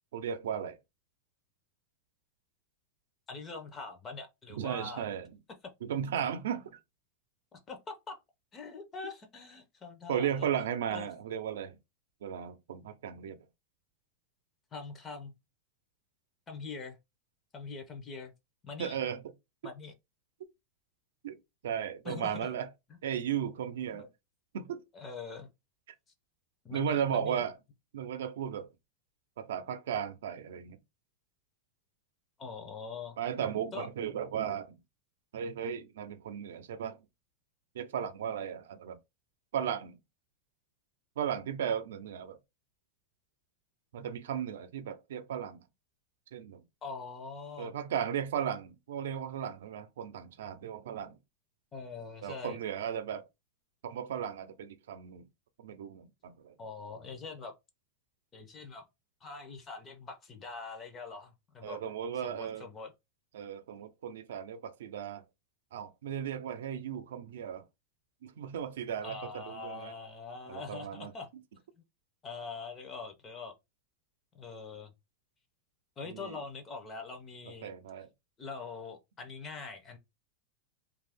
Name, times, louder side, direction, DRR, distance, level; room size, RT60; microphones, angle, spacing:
voice 1, 0.1-0.8 4.5-5.3 5.8-6.8 10.1-11.8 12.2-13.4 18.8-19.2 21.2-21.4 21.6-22.7 23.0-24.1 24.5-24.8 26.7-27.6 27.9-28.7 29.4-30.8 33.2-34.8 35.3-37.0 37.7-39.0 39.5-40.0 41.2-42.4 43.9-45.6 46.3-46.6 47.6-51.2 52.2-53.2 53.8-55.3 55.6-56.5 61.6-62.7 63.3-65.2 65.7-67.6 68.2-69.9 70.5-71.1 76.1-76.4 77.6-78.1, right 8 dB, 85° right, 0.5 m, -35 dB
voice 2, 3.3-5.1 7.5-8.2 8.5-10.5 10.9-11.1 14.7-15.3 16.5-17.0 17.5-18.3 18.6-19.0 19.6-19.9 22.0-22.5 22.9-23.1 23.9-24.1 24.9-25.5 26.6-27.4 32.4-33.2 33.7-33.9 46.8-47.7 51.7-52.6 56.6-57.5 58.3-58.9 59.2-61.8 62.1-62.9 69.0-71.3 72.2-73.5 74.3-74.9 76.0-77.7 78.4-80.0, left 4 dB, 20° left, 0.5 m, -43 dB
2.6 x 2.3 x 3.4 m
supercardioid pair, 165°, 0 cm